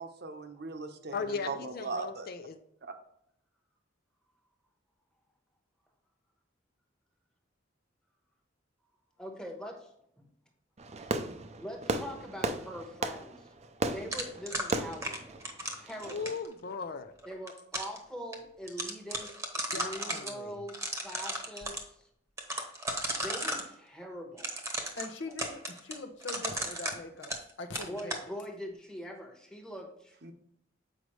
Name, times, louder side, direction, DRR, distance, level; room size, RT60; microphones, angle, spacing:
voice 1, 0.0-2.3 2.8-2.9 30.2-30.3, right 4 dB, 60° right, 6 dB, 0.8 m, -39 dB
voice 2, 1.1-2.6 16.0-17.1 19.7-20.6, left 5 dB, 55° left, 10 dB, 0.5 m, -38 dB
voice 3, 9.2-9.9 11.6-13.5 13.8-15.4 15.7-16.2 17.3-21.9 23.1-24.5 25.3-25.4 27.9-30.1, equal, 5° left, 2 dB, 1.1 m, -43 dB
Fireworks, 10.8-16.4, right 2 dB, 35° right, 0.5 m, -36 dB
sound 1, 14.1-16.5 17.2-18.0 18.3-18.4 18.7-20.3 20.7-21.8 22.4-23.7 24.4-27.5 27.8-28.2, right 1 dB, 15° right, 1.0 m, -35 dB
voice 4, 24.9-27.3 27.6-28.2, left 3 dB, 70° left, 5 dB, 0.8 m, -42 dB
7.7 x 5.1 x 3.1 m, 0.74 s
head